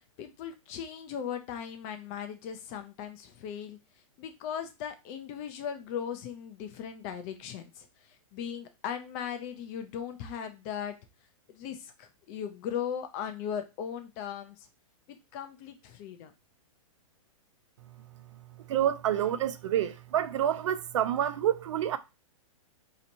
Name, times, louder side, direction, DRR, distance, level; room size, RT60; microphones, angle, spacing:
voice 1, 0.2-3.8 4.2-7.9 8.3-11.0 11.5-14.7 15.3-16.3, left 8 dB, 25° left, 0.4 m, -38 dB
voice 2, 18.7-22.0, right 10 dB, 60° right, 0.4 m, -28 dB
4.2 x 2.9 x 2.6 m
hypercardioid pair, 160°, 18 cm